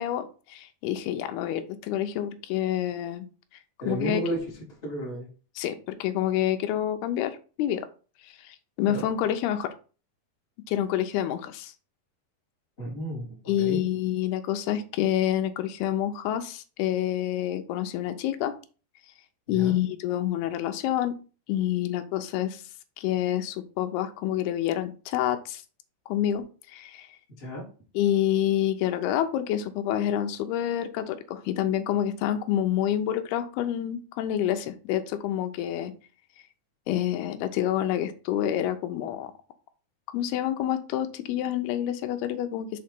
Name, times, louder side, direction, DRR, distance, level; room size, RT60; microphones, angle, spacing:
voice 1, 0.0-3.3 3.9-4.2 5.6-7.9 8.2-9.7 10.7-11.7 13.5-18.5 19.5-21.1 21.5-22.6 23.0-25.6 26.1-26.4 26.7-27.1 27.9-35.9 36.9-39.3 40.1-42.8, left 11 dB, 80° left, 8 dB, 2.5 m, -28 dB
voice 2, 3.8-4.4 4.8-5.3 8.8-9.0 12.8-13.8 19.5-19.7 27.4-27.6, right 1 dB, 20° left, -5 dB, 1.6 m, -32 dB
6.2 x 4.5 x 4.4 m, 0.36 s
omnidirectional pair, 4.8 m